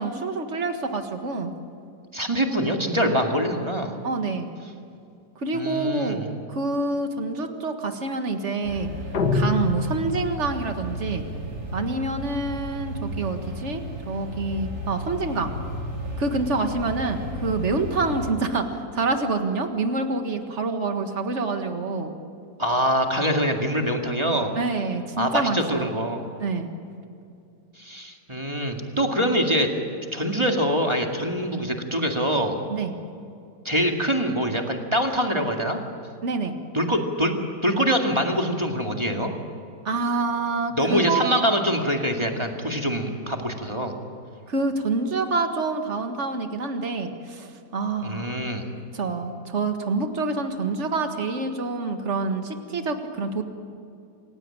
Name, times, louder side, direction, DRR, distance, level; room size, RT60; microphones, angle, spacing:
voice 1, 0.0-1.5 4.0-4.5 5.4-8.9 9.3-11.2 11.7-15.5 16.2-22.1 24.6-25.9 26.4-26.7 32.7-33.0 36.2-36.6 39.9-41.3 44.5-48.4 48.9-53.4, right 3 dB, 45° right, 6 dB, 2.0 m, -27 dB
voice 2, 2.1-4.0 5.5-6.3 22.6-24.5 25.2-26.3 27.8-29.7 30.1-32.6 33.6-35.8 36.7-39.3 40.8-43.9 48.0-48.7, equal, 15° right, 2 dB, 2.0 m, -24 dB
sound 1, 8.6-18.3, equal, 65° right, 4.4 m, -34 dB
sound 2, 9.1-10.6, left 4 dB, 70° left, 2.2 m, -25 dB
28.0 x 16.5 x 8.9 m, 2.5 s
omnidirectional pair, 1.8 m